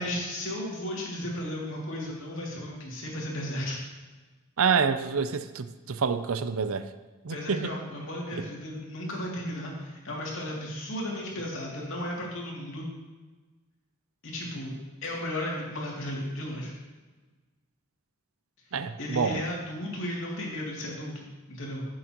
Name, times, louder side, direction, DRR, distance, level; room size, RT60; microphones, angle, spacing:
voice 1, 0.0-3.8 7.3-12.9 14.2-14.7 15.0-16.7 19.0-21.9, left 1 dB, 65° left, -3 dB, 2.6 m, -34 dB
voice 2, 4.6-6.9 7.2-7.7 18.7-19.4, right 5 dB, 70° right, 11 dB, 0.5 m, -27 dB
15.0 x 7.5 x 3.0 m, 1.3 s
head